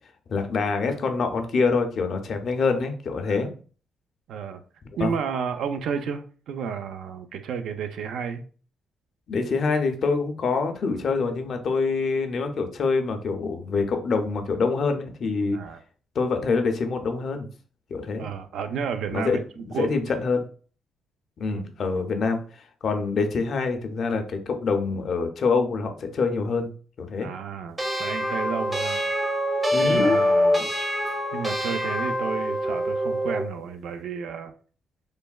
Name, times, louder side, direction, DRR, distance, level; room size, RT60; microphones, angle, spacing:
voice 1, 0.3-3.5 5.0-5.1 9.3-15.6 16.2-17.5 17.9-18.3 19.1-19.4 19.8-20.4 21.4-22.4 22.8-26.7 27.0-27.3 29.7-30.2, left 4 dB, 55° left, 0.5 m, -25 dB
voice 2, 4.3-4.6 5.0-8.4 15.5-15.8 18.2-19.9 21.5-21.7 27.2-29.0 29.8-30.7 31.3-34.5, right 6 dB, 75° right, 0.3 m, -32 dB
sound 1, 27.8-33.5, equal, 20° right, 0.6 m, -25 dB
3.2 x 2.1 x 2.3 m
cardioid pair, 90°, 0 cm